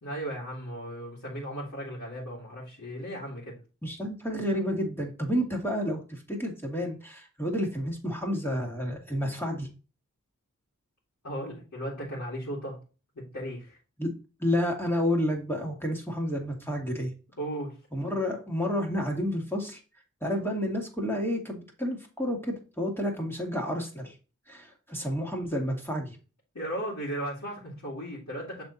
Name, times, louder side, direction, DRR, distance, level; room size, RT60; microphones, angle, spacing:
voice 1, 0.0-3.5 11.2-12.8 13.1-13.8 17.4-17.7 26.5-28.6, right 1 dB, 60° left, -7 dB, 2.8 m, -36 dB
voice 2, 3.8-9.7 14.0-14.1 14.4-17.1 17.9-19.8 20.2-24.1 24.5-26.2, equal, 5° left, -1 dB, 2.1 m, -30 dB
6.6 x 4.3 x 4.1 m, 0.33 s
cardioid pair, 40°, 31 cm